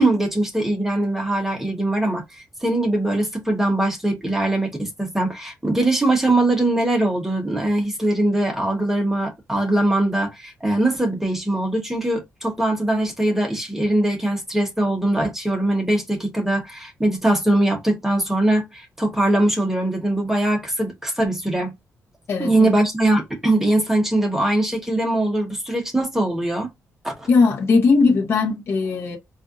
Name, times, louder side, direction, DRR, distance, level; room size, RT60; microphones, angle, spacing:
voice 1, 0.0-21.7 22.4-26.7 27.0-27.3, right 1 dB, 5° right, 1.0 m, -21 dB
voice 2, 22.3-22.7 27.3-29.2, left 4 dB, 50° left, 0.8 m, -18 dB
4.1 x 2.5 x 2.6 m
wide cardioid pair, 170°, 6 cm